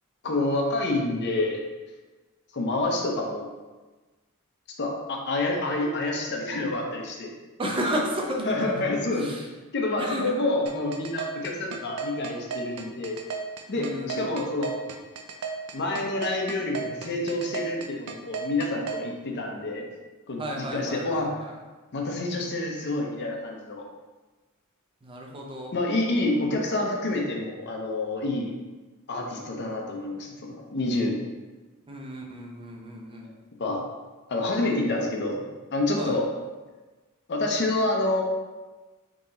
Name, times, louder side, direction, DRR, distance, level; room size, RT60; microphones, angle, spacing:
voice 1, 0.2-1.6 2.5-3.5 4.8-7.3 8.4-9.3 9.7-13.2 13.7-14.7 15.7-19.9 20.3-21.4 21.9-23.8 25.7-28.5 29.1-31.2 33.6-33.8 34.3-35.5 35.7-36.3 37.3-38.2, left 2 dB, 50° left, 1 dB, 0.6 m, -28 dB
voice 2, 7.6-8.7 9.1-9.4 10.0-10.4 13.7-14.2 20.4-21.5 25.0-25.7 31.9-33.3 36.0-36.2, equal, 25° right, 0 dB, 0.5 m, -32 dB
sound 1, 10.7-19.0, right 6 dB, 80° right, 0.4 m, -34 dB
3.8 x 2.9 x 3.9 m, 1.2 s
head